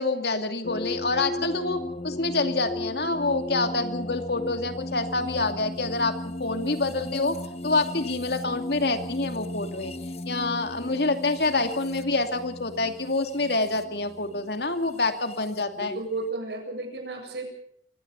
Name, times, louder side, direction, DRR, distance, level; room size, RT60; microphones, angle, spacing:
voice 1, 0.0-1.8 2.0-7.4 7.6-9.9 10.3-15.9, left 3 dB, 65° left, 7 dB, 2.5 m, -27 dB
sound 1, 0.6-15.6, left 1 dB, 35° left, 1.1 m, -36 dB
voice 2, 15.7-17.4, right 2 dB, 75° right, 4 dB, 7.7 m, -33 dB
24.5 x 17.0 x 7.0 m, 0.62 s
head